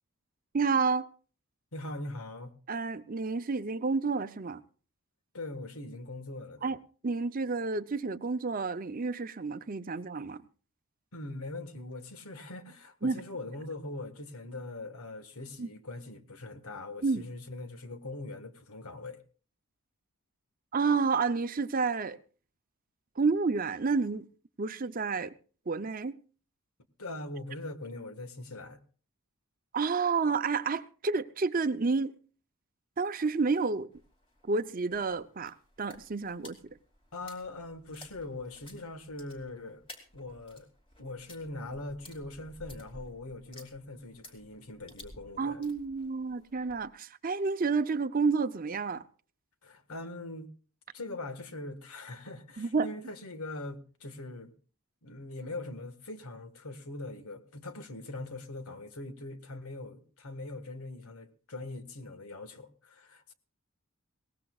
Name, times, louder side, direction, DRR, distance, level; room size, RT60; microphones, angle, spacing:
voice 1, 0.5-1.1 2.7-4.6 6.6-6.8 7.0-10.4 13.0-13.2 15.6-15.7 17.0-17.2 20.7-22.2 23.2-24.3 24.6-25.3 25.7-26.2 29.7-32.1 33.0-33.9 34.4-36.6 45.4-49.0 52.6-52.9, right 4 dB, 40° right, 0.6 m, -30 dB
voice 2, 1.7-2.5 5.3-6.7 11.1-19.2 27.0-28.8 37.1-39.8 40.1-40.7 41.0-45.6 49.6-50.5 50.9-54.5 55.0-63.3, left 2 dB, 85° left, 1.6 m, -42 dB
sound 1, 33.9-46.9, left 1 dB, 25° left, 2.7 m, -54 dB
21.5 x 18.0 x 2.4 m
head